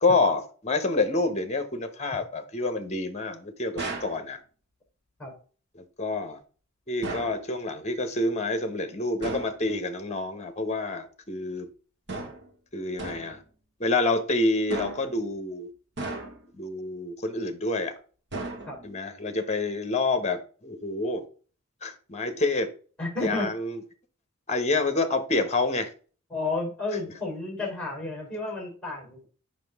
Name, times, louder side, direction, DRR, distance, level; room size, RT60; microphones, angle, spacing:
voice 1, 0.0-4.4 5.7-6.4 6.9-11.7 12.7-13.4 13.8-15.7 16.6-17.9 18.8-21.2 21.8-22.7 23.2-23.8 24.5-25.9 26.9-27.2, left 2 dB, 30° left, 1.1 m, -28 dB
sound 1, 3.8-4.2 7.0-7.4 9.2-9.6 12.1-12.5 13.0-13.4 14.7-15.2 16.0-16.6 18.3-19.0, right 2 dB, 55° right, 1.6 m, -35 dB
voice 2, 23.0-23.5 26.3-29.3, left 3 dB, 5° left, 3.8 m, -32 dB
7.6 x 5.7 x 3.6 m
head